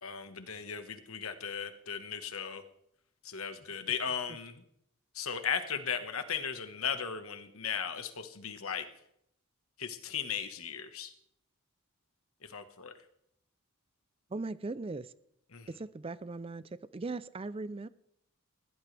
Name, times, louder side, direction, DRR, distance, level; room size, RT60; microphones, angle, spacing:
voice 1, 0.0-2.6 3.2-4.6 5.1-8.9 9.8-11.1 12.4-12.9 15.5-15.7, left 7 dB, 85° left, 1.5 m, -37 dB
voice 2, 14.3-15.2 15.7-17.9, right 3 dB, 25° right, 0.5 m, -39 dB
20.5 x 17.5 x 3.4 m
head